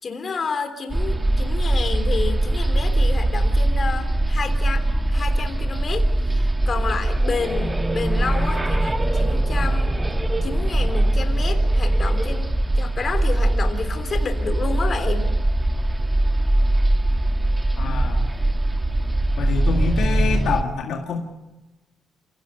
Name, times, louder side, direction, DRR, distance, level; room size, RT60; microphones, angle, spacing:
voice 1, 0.0-9.9 10.4-15.4, left 5 dB, 40° left, 7 dB, 3.4 m, -30 dB
sound 1, 0.9-20.6, right 1 dB, 15° right, 1.3 m, -21 dB
voice 2, 17.8-18.3 19.4-21.2, left 5 dB, 75° left, 2 dB, 1.9 m, -26 dB
27.0 x 17.5 x 6.7 m, 1.1 s
cardioid pair, 90°, 0 cm